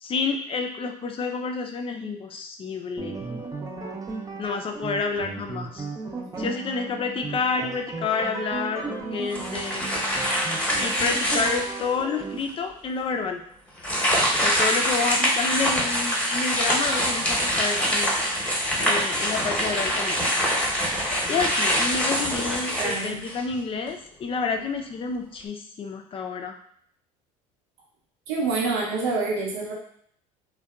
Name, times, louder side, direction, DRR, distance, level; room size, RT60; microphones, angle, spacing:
voice 1, 0.0-3.2 4.4-5.9 6.4-9.8 10.8-13.4 14.4-18.1 18.8-20.2 21.3-26.6, left 5 dB, 30° left, 5 dB, 0.4 m, -29 dB
sound 1, 3.0-12.4, right 4 dB, 20° right, 0.5 m, -35 dB
sound 2, 9.3-11.9 12.4-12.5 13.8-23.6, equal, 5° left, 0.9 m, -24 dB
voice 2, 22.7-23.2 28.3-29.7, right 3 dB, 75° right, -2 dB, 0.7 m, -27 dB
2.6 x 2.2 x 2.3 m, 0.64 s
hypercardioid pair, 75°, 17 cm